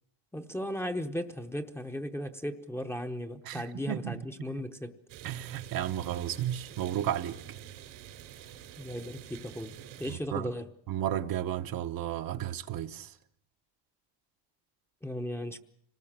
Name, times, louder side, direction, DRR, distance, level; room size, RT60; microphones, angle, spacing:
voice 1, 0.3-4.9 8.8-10.7 15.0-15.6, equal, 5° left, 0.9 m, -36 dB
voice 2, 3.4-4.2 5.2-7.4 10.1-10.5 10.9-13.1, right 11 dB, 50° right, 1.0 m, -33 dB
Rain, 5.1-10.2, right 11 dB, 85° right, 4.7 m, -47 dB
25.5 x 19.0 x 7.4 m
cardioid pair, 145°, 46 cm